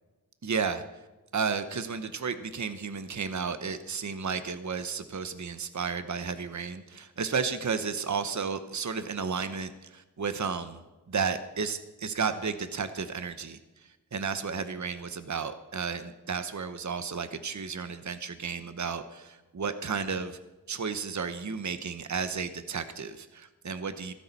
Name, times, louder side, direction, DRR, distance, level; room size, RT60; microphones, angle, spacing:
voice 1, 0.4-0.8 1.3-10.8 11.1-13.6 14.1-20.4 20.7-24.1, right 5 dB, 50° right, 10 dB, 0.9 m, -33 dB
17.0 x 14.0 x 4.1 m, 1.1 s
wide cardioid pair, 65°, 38 cm